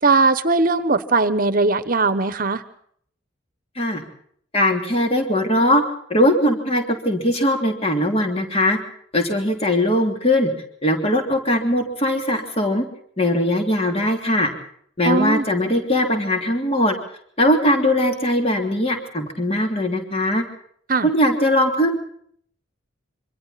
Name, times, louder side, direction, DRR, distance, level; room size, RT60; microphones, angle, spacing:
voice 1, 0.0-2.6 15.0-15.4 20.9-21.1, right 3 dB, 45° right, 12 dB, 1.1 m, -19 dB
voice 2, 4.5-5.8 6.1-8.8 9.1-10.5 10.8-12.8 13.2-14.5 15.0-16.9 17.4-20.4 21.0-22.0, left 1 dB, 30° left, 4 dB, 3.3 m, -20 dB
27.0 x 25.0 x 4.1 m, 0.62 s
head